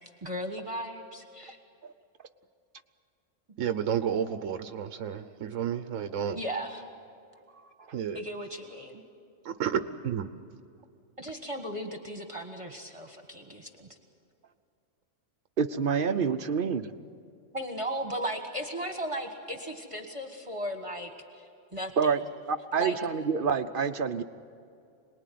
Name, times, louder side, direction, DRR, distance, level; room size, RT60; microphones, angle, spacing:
voice 1, 0.2-1.6 6.3-6.8 8.1-9.0 11.2-13.9 17.5-22.1 22.8-23.0, right 1 dB, 25° right, 4 dB, 1.5 m, -36 dB
voice 2, 3.6-6.4 7.9-8.2 9.4-10.3, right 8 dB, 80° right, 10 dB, 1.2 m, -31 dB
voice 3, 15.6-16.9 22.0-22.2 22.5-24.2, right 6 dB, 50° right, 10 dB, 0.9 m, -27 dB
27.5 x 20.0 x 9.3 m, 2.5 s
omnidirectional pair, 1.3 m